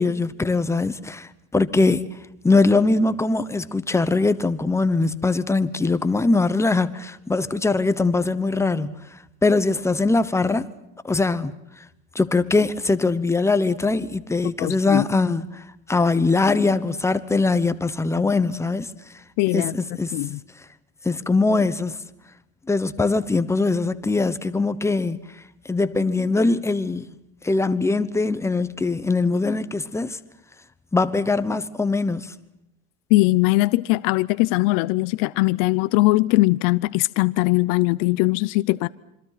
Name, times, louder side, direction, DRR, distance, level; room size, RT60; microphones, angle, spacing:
voice 1, 0.0-2.0 2.4-9.0 9.4-10.7 11.0-11.5 12.1-15.6 15.9-18.9 19.5-20.1 21.0-22.0 22.7-25.2 25.7-27.1 27.4-30.2 30.9-32.3, left 3 dB, 10° left, 1.1 m, -21 dB
voice 2, 14.6-15.0 19.4-19.7 20.1-20.4 33.1-38.9, left 21 dB, 70° left, 0.8 m, -20 dB
27.0 x 25.0 x 5.9 m
cardioid pair, 145°, 33 cm